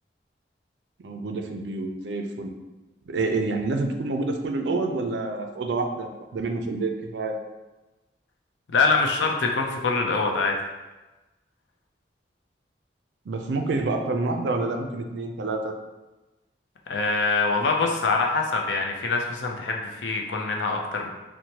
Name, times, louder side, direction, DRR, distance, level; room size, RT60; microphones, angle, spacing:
voice 1, 1.0-2.5 3.1-7.4 13.3-15.7, right 3 dB, 75° right, 4 dB, 0.4 m, -28 dB
voice 2, 8.7-10.5 16.9-21.1, left 4 dB, 80° left, 1 dB, 0.5 m, -24 dB
4.4 x 2.1 x 2.8 m, 1.1 s
head